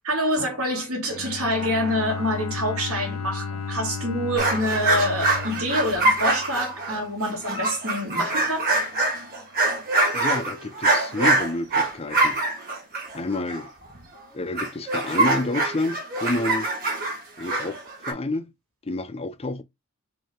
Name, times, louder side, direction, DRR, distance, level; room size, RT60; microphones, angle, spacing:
voice 1, 0.0-8.7, equal, 70° right, 2.5 m, -26 dB
Bowed string instrument, 1.1-7.0, left 5 dB, 80° left, 0.8 m, -34 dB
sound 1, 4.4-14.2 14.6-18.1, right 2 dB, 45° right, 2.1 m, -24 dB
voice 2, 10.1-12.4 13.1-13.7 14.3-16.7 17.4-17.8 18.1-18.5 18.8-19.6, left 2 dB, 30° left, 0.5 m, -29 dB
5.3 x 2.8 x 3.6 m
head